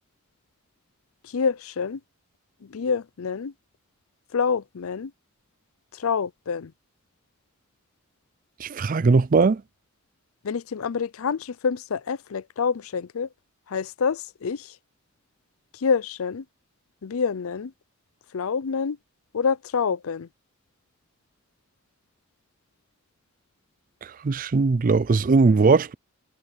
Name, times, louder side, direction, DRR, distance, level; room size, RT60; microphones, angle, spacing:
voice 1, 1.3-2.0 2.7-3.5 4.3-5.1 6.0-6.7 10.4-13.3 13.7-14.7 15.8-16.4 17.0-17.7 18.3-19.0 19.3-20.3, left 6 dB, 75° left, 0.5 m, -27 dB
voice 2, 8.6-9.6 24.0-25.9, right 4 dB, 40° right, 0.4 m, -20 dB
head